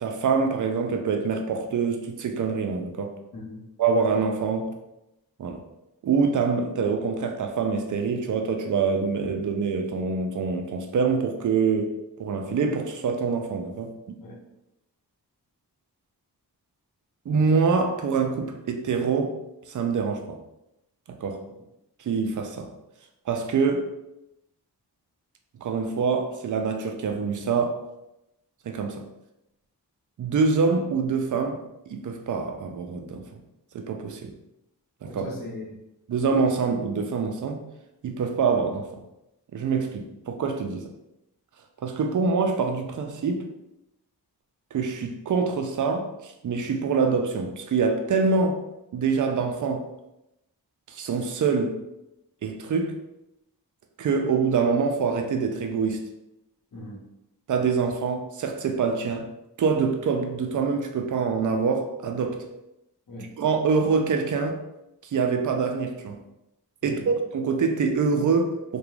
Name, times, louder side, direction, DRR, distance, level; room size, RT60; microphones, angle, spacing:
voice 1, 0.0-3.2 3.8-4.7 5.4-5.6 6.0-13.9 17.3-19.4 19.7-20.4 21.1-21.4 22.0-22.7 23.3-23.9 25.6-27.8 28.7-29.0 30.2-31.6 31.9-33.2 33.7-34.3 35.0-35.2 36.1-37.6 38.0-38.9 39.5-40.9 41.8-43.4 44.7-48.6 48.9-49.8 50.9-51.8 52.4-53.0 54.0-56.1 57.5-59.3 59.6-62.5 63.4-64.6 65.1-66.2 66.8-68.8, right 5 dB, 50° right, 0.5 m, -25 dB
voice 2, 3.3-3.7 14.2-14.4 21.6-21.7 35.1-35.8 56.7-57.0 63.1-63.3 66.8-67.1, left 1 dB, 55° left, 0.9 m, -39 dB
2.9 x 2.2 x 2.4 m
cardioid pair, 55°, 40 cm